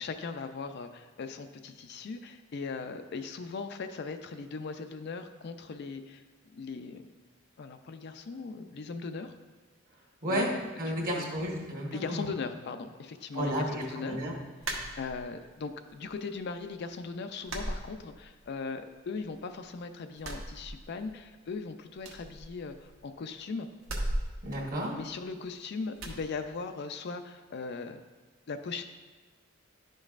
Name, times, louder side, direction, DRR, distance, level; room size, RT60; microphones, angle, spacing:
voice 1, 0.0-6.2 6.5-7.0 7.6-9.3 10.3-10.6 10.9-11.3 11.9-14.2 15.0-23.7 24.9-28.0 28.5-28.8, left 4 dB, 55° left, 8 dB, 0.4 m, -39 dB
voice 2, 10.2-12.3 13.3-14.3 24.4-25.0, equal, 45° right, -2 dB, 1.4 m, -32 dB
sound 1, 14.6-15.5 15.9-16.6 16.9-17.0 17.4-18.6 18.9-19.7 20.1-21.3 21.5-21.6 22.0-23.1 23.8-25.5 26.0-26.2, right 1 dB, 70° right, 1.0 m, -38 dB
11.0 x 5.2 x 2.5 m, 1.4 s
head